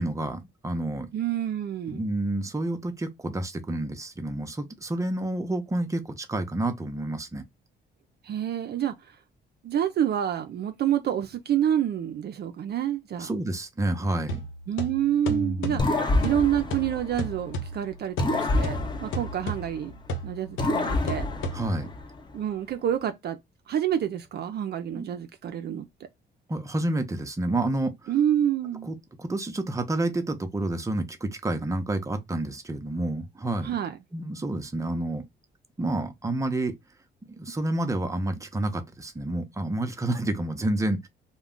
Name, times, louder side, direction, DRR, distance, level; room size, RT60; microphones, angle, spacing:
voice 1, 0.0-1.1 1.9-7.4 13.2-14.5 15.3-15.9 21.5-21.9 24.9-25.1 26.5-27.9 28.8-33.7 34.1-35.2 35.8-36.8 37.3-41.1, right 1 dB, 15° right, 0.7 m, -29 dB
voice 2, 1.1-2.0 8.2-9.2 9.6-13.3 14.7-15.9 16.2-19.9 20.2-21.3 22.3-23.4 23.7-25.9 28.1-28.9 33.6-34.0, right 10 dB, 55° right, 0.5 m, -28 dB
sound 1, 14.3-22.0, right 1 dB, 85° left, 0.8 m, -35 dB
sound 2, 15.8-17.7 18.2-20.1 20.6-22.3, left 2 dB, 20° left, 0.7 m, -28 dB
2.3 x 2.2 x 3.6 m
cardioid pair, 90°, 20 cm